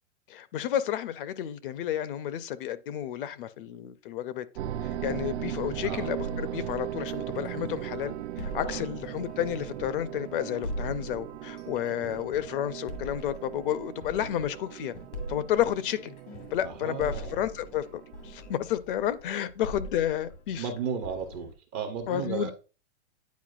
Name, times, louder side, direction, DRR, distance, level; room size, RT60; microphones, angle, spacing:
voice 1, 0.3-4.5 4.8-14.9 15.3-16.1 16.5-20.6 22.1-22.5, left 11 dB, 50° left, 0.5 m, -31 dB
sound 1, 4.5-18.6, right 12 dB, 70° right, 0.6 m, -38 dB
sound 2, 6.2-21.6, equal, 85° left, 1.8 m, -42 dB
voice 2, 16.6-17.4 20.6-22.5, right 7 dB, 20° right, 0.4 m, -34 dB
9.3 x 4.4 x 2.4 m
supercardioid pair, 155°, 35 cm